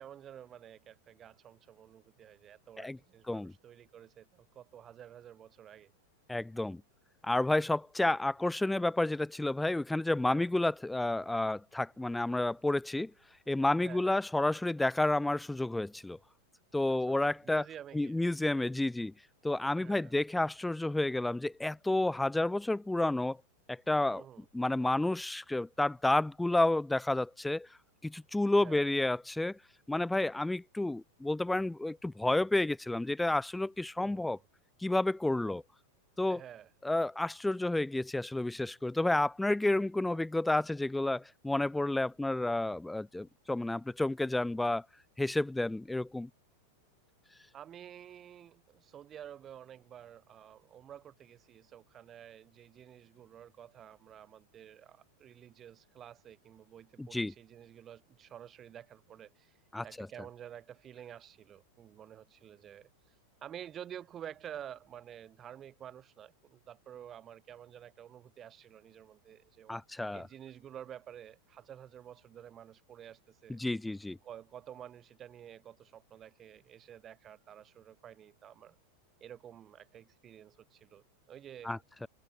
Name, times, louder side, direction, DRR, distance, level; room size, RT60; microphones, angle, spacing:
voice 1, 0.0-5.9 10.3-10.5 13.8-14.2 17.1-17.2 17.4-18.2 19.8-20.1 24.1-24.5 28.6-28.9 34.0-34.5 36.3-36.7 40.1-40.2 47.5-63.2 63.4-73.6 74.2-78.8 79.2-81.8, right 10 dB, 25° right, 6.4 m, -50 dB
voice 2, 6.3-6.8 7.2-13.1 13.5-16.2 16.7-17.6 17.9-19.1 19.4-23.4 23.7-24.2 24.5-27.7 28.0-29.6 29.9-34.4 34.8-35.6 36.2-36.4 36.8-44.8 45.2-46.3 57.0-57.3 59.7-60.1 69.7-70.2 73.5-74.2 81.6-82.1, left 2 dB, 5° left, 0.8 m, -30 dB
figure-of-eight pair, 90°, 0 cm